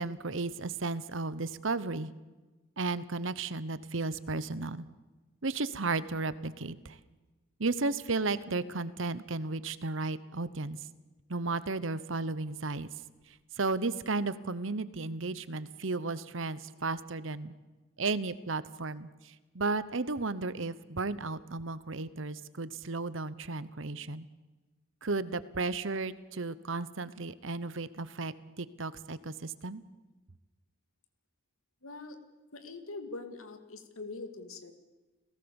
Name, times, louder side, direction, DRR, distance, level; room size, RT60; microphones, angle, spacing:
voice 1, 0.0-2.1 2.8-4.9 5.4-7.0 7.6-10.8 11.3-12.9 13.6-17.5 18.0-24.3 25.0-29.8, right 3 dB, 65° right, 16 dB, 1.0 m, -34 dB
voice 2, 31.8-32.2 32.5-34.7, left 3 dB, 85° left, 7 dB, 2.5 m, -43 dB
29.5 x 18.0 x 7.1 m, 1.2 s
head